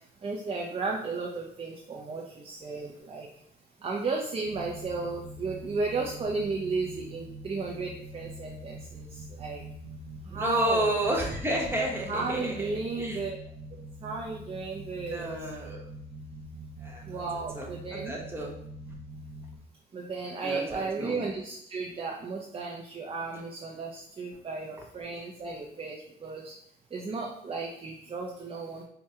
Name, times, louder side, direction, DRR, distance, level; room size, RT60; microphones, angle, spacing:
voice 1, 0.2-3.3 3.8-9.1 9.4-9.6 10.3-11.0 12.1-13.4 13.7-15.4 17.1-18.1 19.9-26.5 26.9-28.8, right 4 dB, 30° right, -1 dB, 0.5 m, -34 dB
sound 1, 4.4-19.6, right 1 dB, 85° right, 0.6 m, -44 dB
voice 2, 10.3-12.7 13.0-13.2 15.0-15.8 16.8-17.2 17.5-18.5 20.4-21.2, right 1 dB, 10° right, -2 dB, 0.9 m, -31 dB
4.6 x 2.2 x 2.8 m, 0.70 s
cardioid pair, 90°, 20 cm